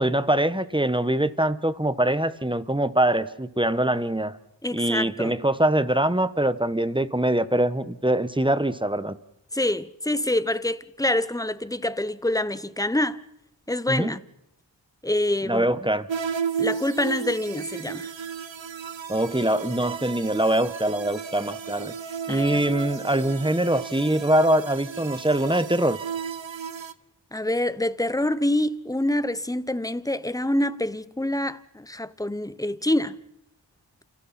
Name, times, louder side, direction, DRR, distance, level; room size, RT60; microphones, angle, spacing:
voice 1, 0.0-4.4 4.7-9.1 13.9-14.1 15.4-16.1 19.1-21.9 22.3-26.0, right 1 dB, 10° right, 1.1 m, -23 dB
voice 2, 4.6-5.3 9.5-13.2 13.7-14.2 15.0-15.9 16.6-18.1 22.3-22.6 27.3-33.2, left 1 dB, 10° left, 1.0 m, -26 dB
sound 1, 16.1-26.9, right 6 dB, 80° right, 0.9 m, -33 dB
30.0 x 28.5 x 4.3 m
wide cardioid pair, 40°, 45 cm